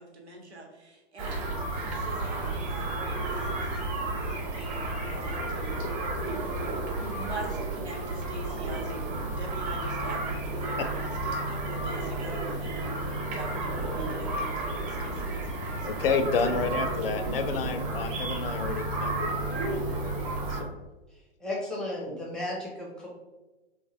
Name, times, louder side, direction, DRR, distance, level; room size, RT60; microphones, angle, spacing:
voice 1, 0.0-5.8 6.2-16.0 16.4-16.5, right 1 dB, 85° right, 1 dB, 0.9 m, -43 dB
sound 1, 1.2-20.6, right 2 dB, 35° right, 0.8 m, -32 dB
voice 2, 15.7-20.1 20.5-20.7, left 5 dB, 60° left, 8 dB, 0.4 m, -31 dB
voice 3, 21.1-23.1, left 1 dB, ahead, -4 dB, 0.4 m, -35 dB
3.0 x 2.1 x 3.0 m, 1.1 s
figure-of-eight pair, 110°, 32 cm